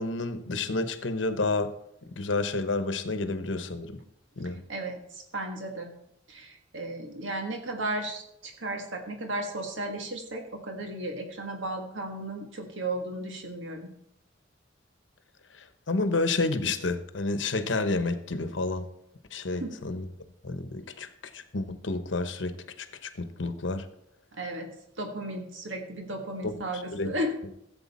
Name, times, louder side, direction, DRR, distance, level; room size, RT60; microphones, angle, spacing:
voice 1, 0.0-1.8 2.2-4.0 4.4-4.6 15.9-18.9 19.3-20.0 20.4-21.1 21.3-23.8 26.4-26.6 26.9-27.1, left 3 dB, 75° left, 10 dB, 1.0 m, -30 dB
voice 2, 4.7-5.9 6.3-13.9 19.5-19.8 24.3-24.7 25.0-27.3, right 1 dB, 85° right, 3 dB, 1.7 m, -35 dB
15.5 x 7.9 x 4.3 m, 0.78 s
head